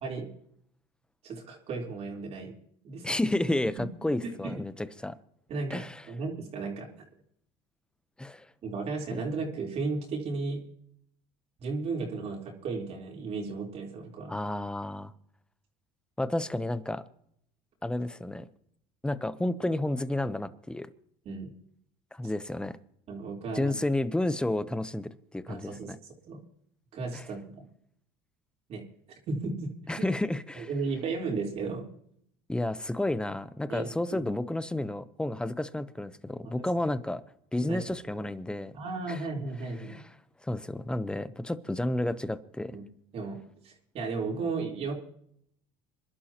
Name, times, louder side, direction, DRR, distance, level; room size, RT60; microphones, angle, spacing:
voice 1, 1.2-2.5 2.8-3.2 4.4-4.6 5.5-7.1 8.6-10.6 11.6-14.3 21.3-21.5 23.1-23.8 25.5-26.0 26.3-26.4 26.9-27.7 28.7-28.8 29.3-29.7 30.0-30.1 30.6-31.9 33.7-34.2 36.5-36.7 37.6-37.8 38.7-40.0 42.7-42.8 43.1-43.4 43.6-44.9, right 4 dB, 50° right, -1 dB, 3.9 m, -34 dB
voice 2, 3.0-5.2 5.7-6.0 8.2-8.5 9.1-9.2 14.3-15.1 16.2-17.0 17.8-18.5 19.0-20.9 22.1-22.8 23.5-25.8 27.1-27.3 29.9-30.7 32.5-37.2 37.5-38.7 39.1-39.2 39.8-40.1 40.4-42.8, left 1 dB, 5° left, 13 dB, 0.9 m, -31 dB
26.5 x 11.5 x 3.0 m, 0.70 s
supercardioid pair, 105°, 13 cm